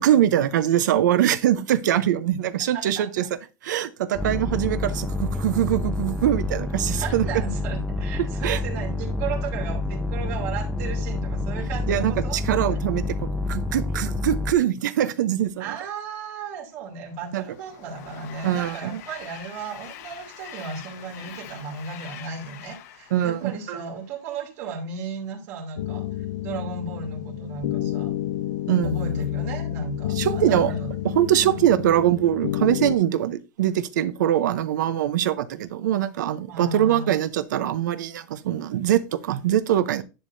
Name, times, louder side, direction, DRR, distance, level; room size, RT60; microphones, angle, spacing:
voice 1, 0.0-3.2 3.6-7.3 8.4-8.6 11.9-13.0 13.5-15.7 17.3-17.4 18.4-19.0 23.1-23.5 28.7-29.2 30.2-30.7 31.1-40.0, right 11 dB, 85° right, 0.8 m, -23 dB
voice 2, 2.7-3.1 6.8-12.4 15.6-26.1 26.4-28.1 28.8-31.0 31.4-31.7 36.5-37.1, right 5 dB, 55° right, 2.6 m, -35 dB
sound 1, 4.1-14.5, left 2 dB, 5° left, 0.7 m, -28 dB
Train, 16.8-24.3, left 10 dB, 60° left, 1.1 m, -44 dB
sound 2, 25.8-33.0, left 12 dB, 80° left, 0.5 m, -29 dB
10.5 x 6.5 x 2.6 m
supercardioid pair, 155°, 10 cm